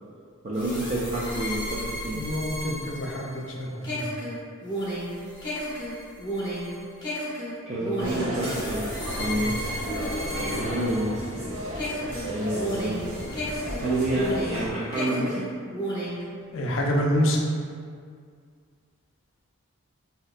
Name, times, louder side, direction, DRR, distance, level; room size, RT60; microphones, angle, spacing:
voice 1, 0.4-2.2 7.7-8.9 9.2-9.6 10.4-11.2 12.2-13.2 13.8-15.5, right 1 dB, 30° right, -8 dB, 0.3 m, -29 dB
sound 1, 0.5-11.4 11.8-14.6 14.9-16.2, equal, 20° left, 0.6 m, -33 dB
voice 2, 2.1-4.0 16.5-17.4, equal, 65° left, 0 dB, 0.4 m, -27 dB
sound 2, 8.0-14.7, equal, 80° right, 0.7 m, -33 dB
3.2 x 2.7 x 2.4 m, 2.1 s
head